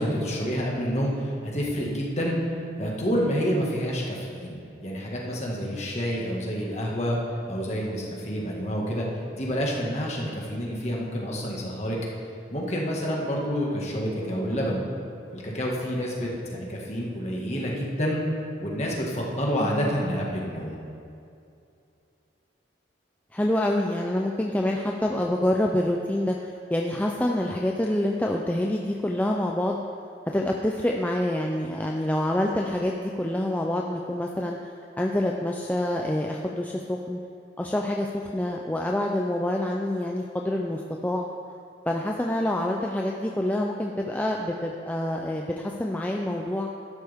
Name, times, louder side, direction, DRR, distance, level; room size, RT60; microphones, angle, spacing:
voice 1, 0.0-2.4 2.8-7.2 7.5-9.0 9.3-12.0 12.5-14.8 15.3-18.2 18.6-20.8, equal, 35° left, -3 dB, 1.8 m, -28 dB
voice 2, 19.6-19.9 23.3-29.8 30.3-34.7 35.0-37.2 37.6-41.3 41.9-46.7, left 1 dB, 10° left, 0 dB, 0.4 m, -27 dB
12.5 x 11.5 x 3.6 m, 2.5 s
head